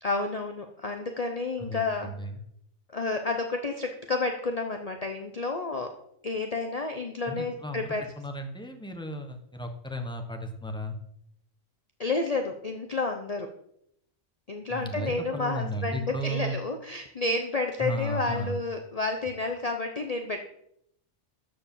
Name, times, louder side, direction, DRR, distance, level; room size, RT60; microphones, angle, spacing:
voice 1, 0.0-2.1 2.9-5.9 6.2-8.0 12.0-13.5 14.5-20.4, left 3 dB, 35° left, 5 dB, 0.9 m, -30 dB
voice 2, 1.6-2.4 7.3-11.0 14.7-16.6 17.8-18.6, right 1 dB, 5° left, 5 dB, 1.4 m, -34 dB
13.5 x 5.0 x 7.3 m, 0.72 s
omnidirectional pair, 1.2 m